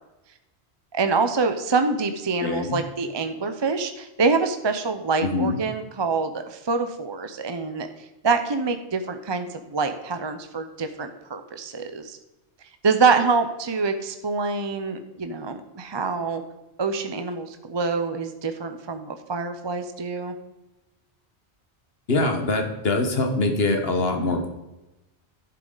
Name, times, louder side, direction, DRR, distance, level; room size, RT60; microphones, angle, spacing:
voice 1, 0.9-7.9 8.2-12.2 12.8-16.4 16.8-20.3, right 4 dB, 30° right, 8 dB, 0.6 m, -25 dB
voice 2, 2.4-2.8 5.2-5.6 22.1-24.5, left 2 dB, 65° left, 4 dB, 1.5 m, -23 dB
12.0 x 7.1 x 3.9 m, 1.0 s
omnidirectional pair, 1.1 m